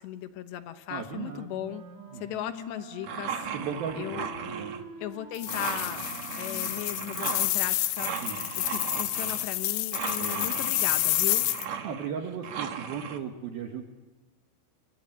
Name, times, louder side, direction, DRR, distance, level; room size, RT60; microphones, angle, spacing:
voice 1, 0.0-1.8 2.1-3.5 3.9-4.3 5.0-6.0 6.4-8.1 8.6-11.5, left 12 dB, 75° left, 9 dB, 2.9 m, -37 dB
voice 2, 0.9-1.5 2.1-2.2 3.5-4.8 8.2-8.4 10.2-10.5 11.8-13.9, right 7 dB, 65° right, 4 dB, 2.6 m, -36 dB
Wind instrument woodwind instrument, 1.5-7.7, right 1 dB, 45° right, 7.4 m, -46 dB
sound 1, 3.0-4.8 5.5-9.5 9.9-13.2, right 7 dB, 85° right, 1.5 m, -37 dB
sound 2, 5.3-11.7, left 16 dB, 90° left, 3.8 m, -29 dB
27.0 x 23.0 x 8.9 m, 1.1 s
omnidirectional pair, 5.9 m